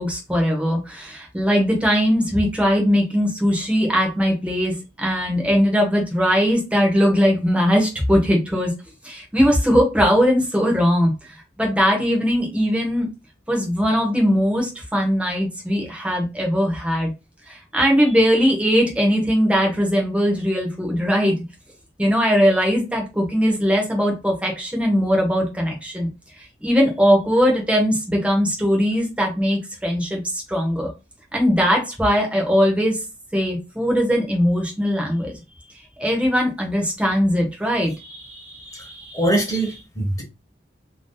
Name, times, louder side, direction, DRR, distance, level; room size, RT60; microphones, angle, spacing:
voice 1, 0.0-8.7 9.0-11.1 11.6-13.1 13.5-17.1 17.5-21.3 22.0-26.1 26.6-30.9 31.3-33.0 33.3-35.3 36.0-39.2, equal, 5° right, 0.8 m, -20 dB
voice 2, 39.1-40.2, right 1 dB, 15° left, 1.0 m, -22 dB
2.6 x 2.3 x 3.7 m
head